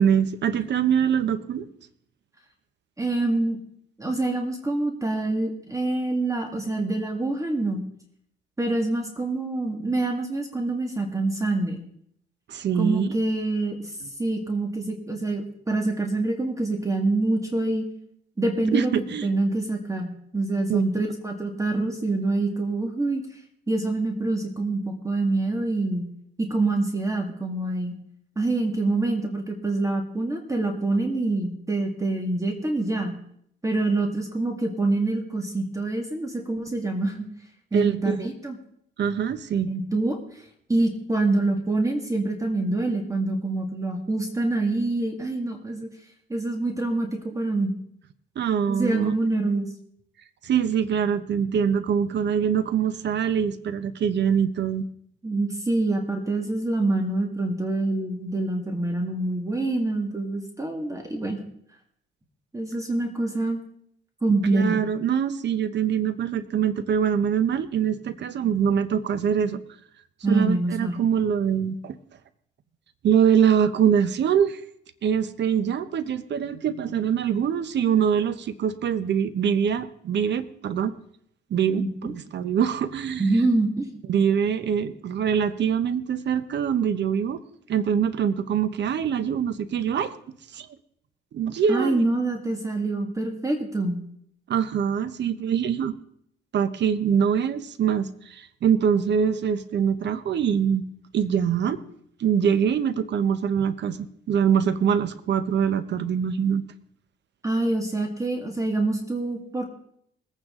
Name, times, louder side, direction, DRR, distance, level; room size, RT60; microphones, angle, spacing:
voice 1, 0.0-1.7 12.5-13.1 14.0-14.1 18.7-19.3 20.7-20.8 37.7-38.3 39.0-39.7 48.4-49.1 50.4-54.8 64.5-69.6 70.3-72.0 73.0-74.6 75.0-80.9 81.5-83.3 84.1-87.4 87.7-90.1 90.5-90.7 91.3-92.1 94.5-96.0 96.5-100.8 101.1-101.8 102.2-106.6, right 8 dB, 60° right, 13 dB, 1.0 m, -24 dB
voice 2, 3.0-3.6 4.0-7.8 8.6-11.8 12.8-13.9 14.2-17.8 18.4-18.9 19.2-23.2 23.7-26.1 26.4-27.9 28.4-33.2 33.6-37.3 37.7-38.6 39.7-40.2 40.7-45.9 46.3-47.7 48.7-49.7 55.2-61.4 62.5-63.6 64.2-64.8 70.2-71.0 81.8-82.1 83.2-84.0 91.7-94.0 107.4-109.6, right 2 dB, 15° right, 3 dB, 1.9 m, -26 dB
20.5 x 9.0 x 3.8 m, 0.70 s
cardioid pair, 90°, 20 cm